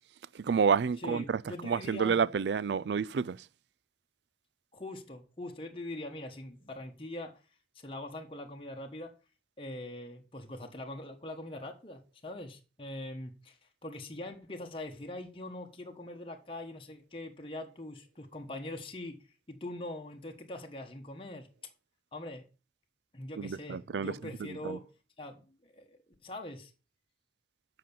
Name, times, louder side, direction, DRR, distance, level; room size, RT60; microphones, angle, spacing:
voice 1, 0.3-3.4 23.4-24.1 24.6-24.8, right 6 dB, 75° right, 0.4 m, -29 dB
voice 2, 1.0-2.2 4.7-7.4 7.7-9.1 9.6-21.5 22.1-22.5 23.1-24.8 25.2-26.7, left 1 dB, 30° left, 1.2 m, -43 dB
7.6 x 5.8 x 6.9 m
head